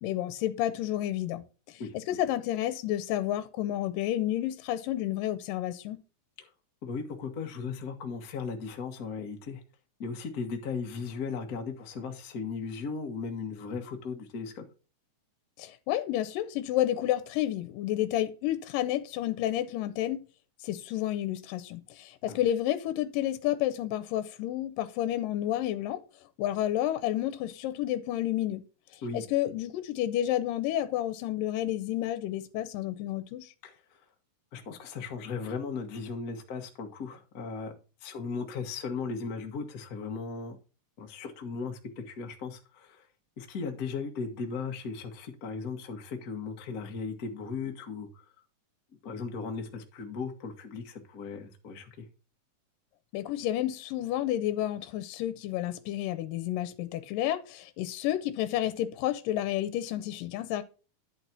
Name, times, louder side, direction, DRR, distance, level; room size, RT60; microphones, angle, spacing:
voice 1, 0.0-6.0 15.6-20.2 20.6-26.0 26.4-28.6 29.1-33.5 53.1-60.6, left 13 dB, 85° left, 2.4 m, -30 dB
voice 2, 1.8-2.2 6.4-6.5 6.8-9.6 10.0-14.6 22.3-22.4 29.0-29.5 33.6-34.0 34.5-37.7 38.0-40.6 41.0-43.1 43.4-48.1 49.0-52.0, left 5 dB, 50° left, 1.1 m, -37 dB
10.5 x 4.1 x 6.0 m
omnidirectional pair, 3.9 m